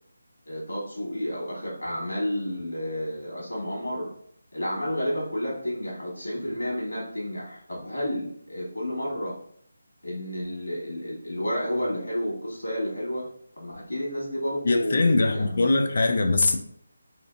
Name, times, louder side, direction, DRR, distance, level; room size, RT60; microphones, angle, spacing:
voice 1, 0.4-4.1 4.5-9.3 10.0-13.3 13.6-15.7, equal, 90° left, -4 dB, 1.4 m, -31 dB
voice 2, 14.6-16.6, left 3 dB, 55° left, 5 dB, 0.4 m, -22 dB
2.7 x 2.5 x 2.5 m, 0.64 s
figure-of-eight pair, 160°, 0 cm